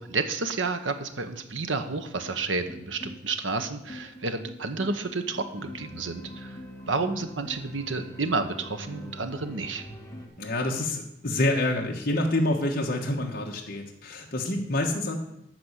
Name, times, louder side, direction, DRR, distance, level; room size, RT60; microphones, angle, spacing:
voice 1, 0.0-6.6 6.9-9.8, right 3 dB, 75° right, 8 dB, 1.0 m, -30 dB
sound 1, 2.2-10.3, left 1 dB, 15° left, 1.5 m, -44 dB
voice 2, 10.4-15.2, left 1 dB, 50° left, 0 dB, 1.3 m, -27 dB
12.0 x 4.3 x 8.1 m, 0.85 s
head